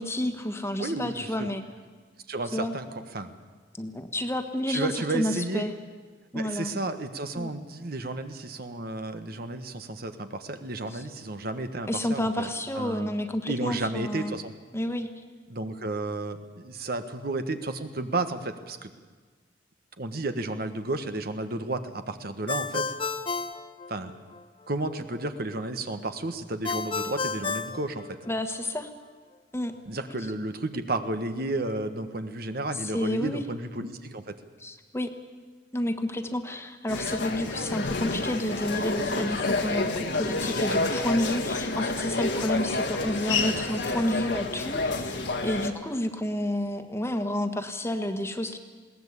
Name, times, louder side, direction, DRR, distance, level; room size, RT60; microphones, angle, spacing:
voice 1, 0.0-1.6 2.5-2.7 3.8-5.7 6.3-6.7 7.3-7.5 10.9-11.0 11.9-14.3 14.7-15.1 28.3-28.9 29.5-29.7 32.8-33.4 34.6-35.1 35.7-48.6, left 1 dB, 15° left, 7 dB, 1.4 m, -30 dB
voice 2, 0.8-1.5 2.3-2.9 3.1-3.3 4.7-5.6 6.3-12.5 12.8-13.1 13.4-14.5 15.5-18.9 20.0-22.9 23.9-24.1 24.7-28.2 29.9-34.3 40.7-40.9, right 2 dB, 60° right, 9 dB, 1.3 m, -32 dB
Ringtone, 22.5-24.4 26.6-28.6, left 4 dB, 30° left, 0.9 m, -32 dB
sound 1, 36.9-45.7, left 3 dB, 75° left, 1.8 m, -29 dB
21.0 x 17.5 x 8.3 m, 1.5 s
head